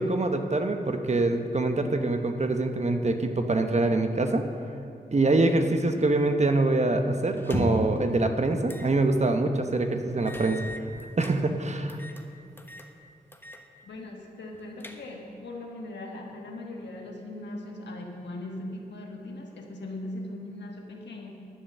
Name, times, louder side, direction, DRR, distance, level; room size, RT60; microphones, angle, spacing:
voice 1, 0.0-4.4 5.1-10.6 11.2-12.0, right 2 dB, 40° right, 6 dB, 1.0 m, -24 dB
sound 1, 7.4-8.0 8.7-8.9 9.3-9.4 10.3-11.4 11.9-12.2 12.6-12.9 13.3-13.6 13.9-14.0 14.5-15.3, left 1 dB, 10° left, 1.1 m, -36 dB
voice 2, 13.8-21.4, left 1 dB, 85° left, 1 dB, 1.4 m, -39 dB
11.0 x 7.1 x 6.8 m, 2.6 s
cardioid pair, 45°, 18 cm